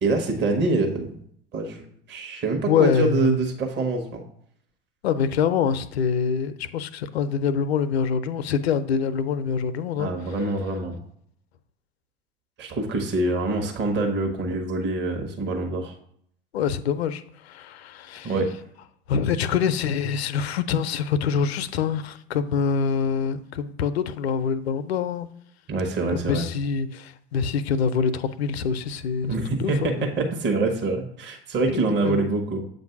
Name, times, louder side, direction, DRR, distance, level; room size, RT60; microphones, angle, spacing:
voice 1, 0.0-1.2 1.5-4.2 10.0-11.0 12.6-15.9 18.2-18.5 25.7-26.5 29.2-32.6, right 3 dB, 35° right, 1.1 m, -25 dB
voice 2, 2.6-3.4 5.0-10.1 16.5-18.3 19.1-25.3 26.1-30.0 31.7-32.3, left 6 dB, 80° left, 0.5 m, -25 dB
7.7 x 2.6 x 5.7 m
hypercardioid pair, 80°, 31 cm